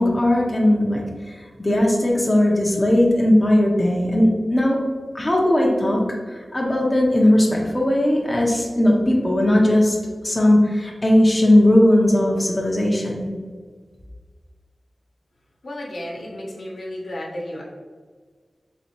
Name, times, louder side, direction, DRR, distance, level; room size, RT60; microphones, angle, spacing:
voice 1, 0.0-4.8 5.1-10.0 10.2-13.3, left 1 dB, 25° left, -2 dB, 0.6 m, -18 dB
voice 2, 15.6-17.6, left 1 dB, 75° left, -3 dB, 0.9 m, -33 dB
4.1 x 2.7 x 2.9 m, 1.5 s
wide cardioid pair, 100°, 0 cm